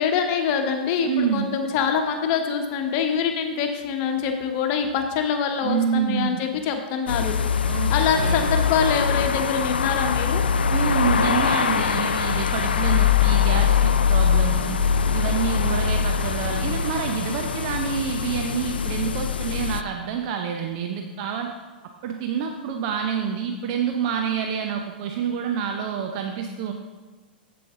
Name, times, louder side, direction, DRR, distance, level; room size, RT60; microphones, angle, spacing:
voice 1, 0.0-10.4, left 6 dB, 45° left, 5 dB, 1.1 m, -25 dB
voice 2, 1.1-1.5 5.6-6.4 7.7-8.4 10.7-14.9 15.1-21.5 22.0-26.7, right 7 dB, 50° right, 4 dB, 0.7 m, -27 dB
sound 1, 7.1-19.8, left 7 dB, 80° left, 0.3 m, -22 dB
7.8 x 7.6 x 3.7 m, 1.3 s
figure-of-eight pair, 100°, 5 cm